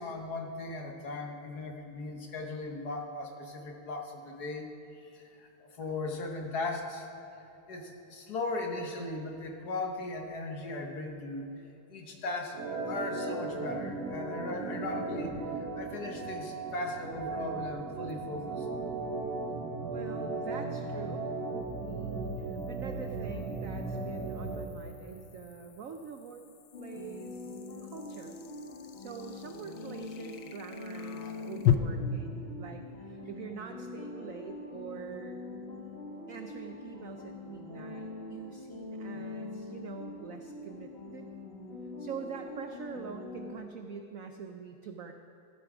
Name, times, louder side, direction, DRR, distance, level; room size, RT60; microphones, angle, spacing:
voice 1, 0.0-4.7 5.0-7.1 7.7-11.5 11.9-12.5 12.9-18.7, left 2 dB, 55° left, 2 dB, 1.6 m, -38 dB
Organ, 12.5-24.7, right 3 dB, 60° right, 1.8 m, -36 dB
sound 1, 18.1-18.2 21.6-31.7, left 11 dB, 70° left, 1.2 m, -38 dB
voice 2, 19.9-21.3 21.8-26.4 26.8-28.4 29.0-35.4 36.3-41.3 42.0-45.1, right 6 dB, 90° right, 5 dB, 0.7 m, -45 dB
sound 2, 26.7-43.5, left 2 dB, 35° left, 2.0 m, -43 dB
15.0 x 11.0 x 5.0 m, 2.9 s
omnidirectional pair, 2.2 m